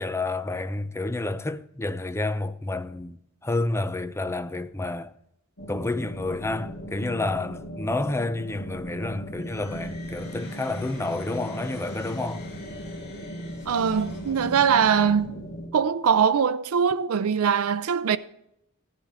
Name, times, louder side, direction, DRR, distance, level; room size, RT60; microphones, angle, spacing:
voice 1, 0.0-5.1 5.7-12.4, left 2 dB, 10° left, 0.5 m, -29 dB
sound 1, 5.6-15.7, equal, 75° left, 3.4 m, -37 dB
sound 2, 9.4-15.1, left 2 dB, 55° left, 4.5 m, -46 dB
voice 2, 13.7-15.5 15.7-18.2, right 7 dB, 90° right, 0.5 m, -22 dB
15.0 x 10.5 x 3.6 m
head